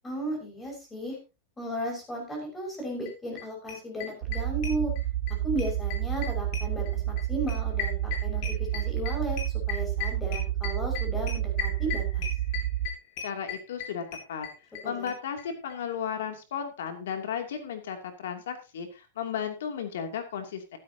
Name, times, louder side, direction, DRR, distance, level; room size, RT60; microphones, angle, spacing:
voice 1, 0.0-1.2 1.6-4.9 5.4-9.4 9.7-12.2 14.9-15.1, right 1 dB, 10° left, 1 dB, 5.7 m, -35 dB
sound 1, 3.1-3.2 3.4-3.5 3.7-5.3 5.6-14.8 15.1-15.2 15.4-15.5 15.7-15.8, left 8 dB, 40° left, 7.4 m, -36 dB
sound 2, 4.2-12.9, right 13 dB, 50° right, 0.8 m, -30 dB
voice 2, 13.2-14.0 14.3-14.5 14.8-20.8, left 7 dB, 80° left, 5 dB, 2.7 m, -34 dB
15.0 x 13.0 x 2.9 m, 0.29 s
supercardioid pair, 170°, 0 cm